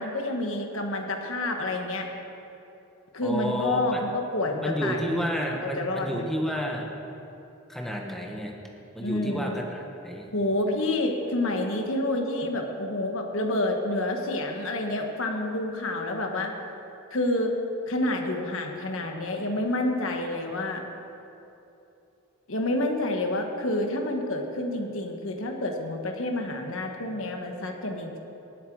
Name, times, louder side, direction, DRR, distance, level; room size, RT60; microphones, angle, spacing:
voice 1, 0.0-2.1 3.1-5.3 5.6-6.3 9.0-9.5 10.3-16.5 17.1-17.5 17.9-20.8 22.5-28.2, left 1 dB, 70° left, 3 dB, 1.3 m, -28 dB
voice 2, 3.2-4.0 4.6-6.9 7.7-8.5 8.9-10.3, equal, ahead, 0 dB, 1.1 m, -31 dB
18.0 x 7.8 x 4.7 m, 2.9 s
head